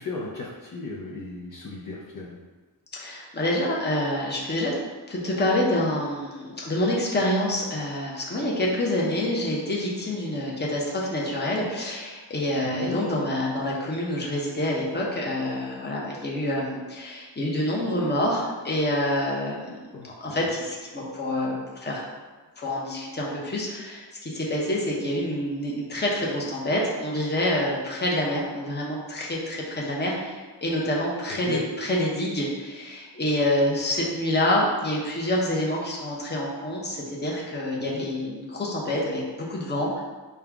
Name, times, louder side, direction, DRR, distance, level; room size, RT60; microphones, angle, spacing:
voice 1, 0.0-2.4 12.8-13.0 19.9-20.1 31.5-31.6 37.9-38.1, left 3 dB, 50° left, -4 dB, 0.7 m, -35 dB
voice 2, 2.9-4.7 5.1-19.8 20.0-22.1 22.6-40.0, left 1 dB, 25° left, -3 dB, 0.9 m, -27 dB
5.5 x 2.3 x 3.5 m, 1.3 s
wide cardioid pair, 110°, 42 cm